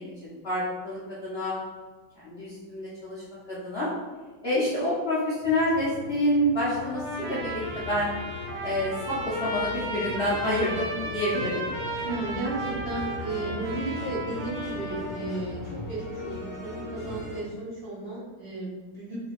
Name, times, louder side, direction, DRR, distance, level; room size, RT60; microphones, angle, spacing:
voice 1, 0.0-1.5 2.2-3.9 4.4-7.0 7.3-8.1 8.6-11.6, left 1 dB, 75° left, -9 dB, 0.5 m, -28 dB
sound 1, 5.4-17.4, left 2 dB, 5° right, 1.1 m, -40 dB
Trumpet, 6.8-15.4, right 1 dB, 65° right, 1.7 m, -35 dB
voice 2, 12.0-15.6 15.9-19.2, right 2 dB, 35° right, -9 dB, 1.0 m, -34 dB
4.8 x 2.8 x 2.5 m, 1.3 s
omnidirectional pair, 2.3 m